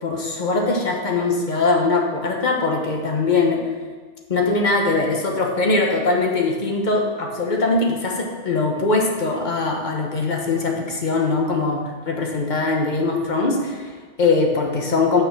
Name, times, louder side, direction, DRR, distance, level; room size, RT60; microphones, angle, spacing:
voice 1, 0.0-3.6 4.3-15.2, left 3 dB, 40° left, 0 dB, 1.2 m, -21 dB
6.3 x 5.8 x 6.0 m, 1.4 s
omnidirectional pair, 1.2 m